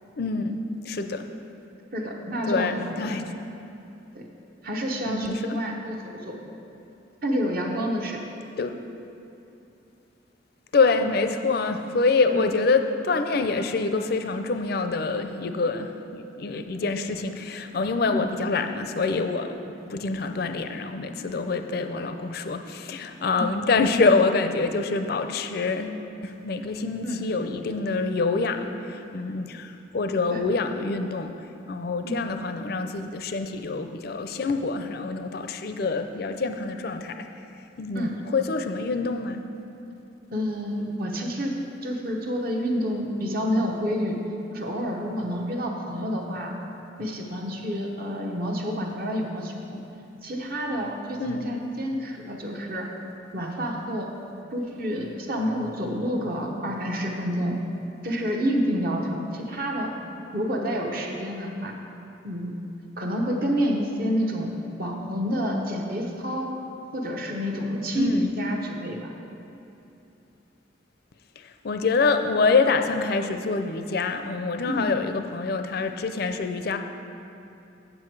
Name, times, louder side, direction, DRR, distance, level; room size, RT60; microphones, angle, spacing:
voice 1, 0.2-1.3 2.5-3.2 5.0-5.6 8.6-8.8 10.7-31.3 31.7-37.3 37.8-39.4 51.2-51.4 67.9-68.3 71.4-76.8, left 4 dB, 55° left, 7 dB, 0.5 m, -26 dB
voice 2, 1.9-3.2 4.1-4.3 4.6-6.4 7.2-8.2 11.0-11.1 12.2-12.4 18.1-18.2 23.4-23.5 27.0-27.2 30.3-30.4 32.0-32.2 37.9-38.1 40.3-44.2 44.5-46.6 47.0-49.8 50.2-52.9 53.3-54.1 54.5-57.6 58.0-60.0 60.3-61.8 62.2-62.6 63.0-64.5 64.8-66.6 66.9-69.1 74.7-74.9, equal, 50° right, 0 dB, 0.9 m, -28 dB
7.8 x 7.7 x 4.6 m, 2.8 s
head